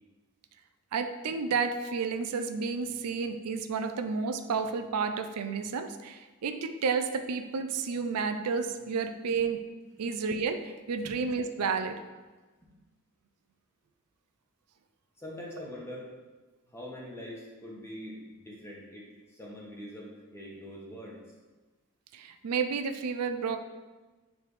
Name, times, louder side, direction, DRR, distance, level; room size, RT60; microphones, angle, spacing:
voice 1, 0.9-9.7 10.0-12.0 22.1-23.6, right 5 dB, 90° right, 8 dB, 0.4 m, -31 dB
voice 2, 15.2-16.1 16.7-21.2, equal, 10° left, -4 dB, 1.2 m, -43 dB
9.2 x 3.4 x 3.2 m, 1.2 s
head